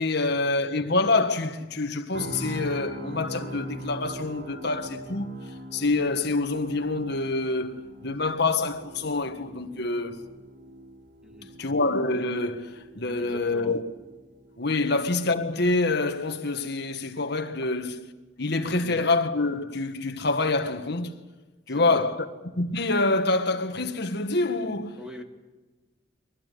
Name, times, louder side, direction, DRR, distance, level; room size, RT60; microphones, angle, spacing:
voice 1, 0.0-5.3 5.7-10.2 11.6-13.8 14.6-18.0 18.4-21.2 21.7-22.3 22.6-25.0, left 3 dB, 55° left, 1.7 m, -26 dB
sound 1, 2.1-16.1 16.5-16.7, right 1 dB, 60° right, 4.6 m, -42 dB
voice 2, 11.2-11.6 13.2-13.8 18.7-19.0 21.7-22.1 24.9-25.2, equal, 5° right, 2.0 m, -43 dB
23.5 x 19.0 x 9.3 m
head